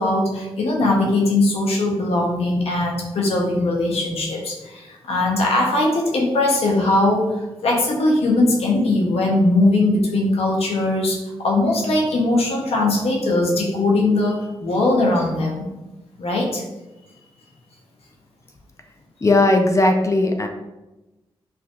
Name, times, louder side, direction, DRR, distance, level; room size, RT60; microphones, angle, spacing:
voice 1, 0.0-15.7 16.2-16.6, left 2 dB, 80° left, -1 dB, 0.7 m, -20 dB
voice 2, 19.2-20.5, left 2 dB, 30° left, 4 dB, 0.5 m, -17 dB
4.6 x 2.6 x 2.3 m, 1.0 s
cardioid pair, 55°, 10 cm